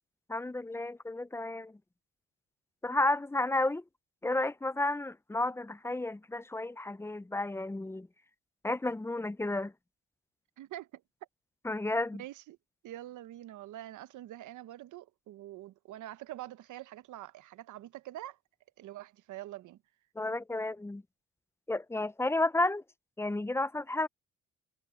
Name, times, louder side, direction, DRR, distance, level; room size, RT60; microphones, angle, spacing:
voice 1, 0.3-1.7 2.8-3.8 4.2-8.1 8.6-9.7 11.6-12.2 20.2-21.0 21.7-22.8 23.2-24.1, left 2 dB, 10° left, 0.5 m, -32 dB
voice 2, 10.6-11.0 12.2-12.6 12.8-18.4 18.8-19.8, right 14 dB, 80° right, 0.9 m, -45 dB
cardioid pair, 90°, 30 cm